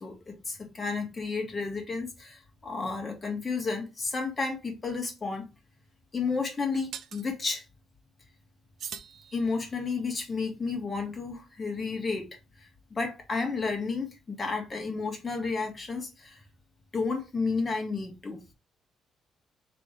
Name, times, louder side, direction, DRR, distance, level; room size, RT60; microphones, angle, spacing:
voice 1, 0.0-5.5 6.1-7.6 9.3-12.3 12.6-16.4 16.9-18.4, left 4 dB, 35° left, 1.9 m, -32 dB
sound 1, 5.0-5.1 6.9-7.3 8.8-9.9, right 8 dB, 70° right, 0.5 m, -42 dB
3.4 x 3.4 x 4.4 m
cardioid pair, 90°, 0 cm